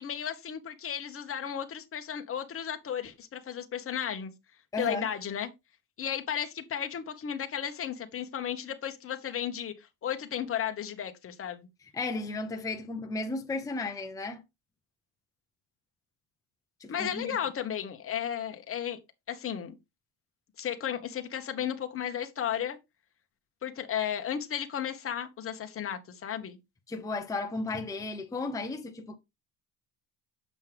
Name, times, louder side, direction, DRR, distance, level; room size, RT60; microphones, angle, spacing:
voice 1, 0.0-4.3 4.8-5.5 6.0-11.7 16.9-19.0 19.3-19.7 20.6-22.8 23.6-26.6, left 9 dB, 30° left, 1.2 m, -34 dB
voice 2, 4.7-5.1 11.9-14.4 16.8-17.4 26.9-29.2, left 3 dB, 10° left, 0.7 m, -34 dB
7.3 x 5.3 x 3.4 m
cardioid pair, 130°, 43 cm